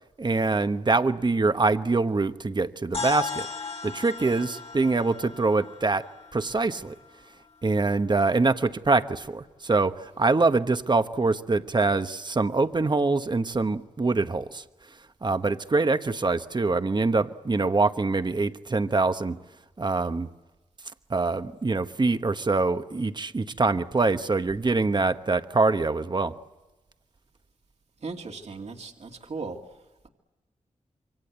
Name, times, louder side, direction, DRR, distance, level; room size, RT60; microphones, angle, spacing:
voice 1, 0.2-3.5 3.8-6.0 6.3-6.9 7.6-14.6 15.2-19.4 19.8-20.3 21.1-26.3, right 3 dB, 35° right, 10 dB, 1.2 m, -24 dB
sound 1, 2.9-7.5, left 5 dB, 50° left, 2.4 m, -37 dB
voice 2, 28.0-29.6, right 4 dB, 55° right, 2 dB, 2.4 m, -37 dB
27.5 x 24.0 x 8.1 m, 1.1 s
cardioid pair, 60°, 13 cm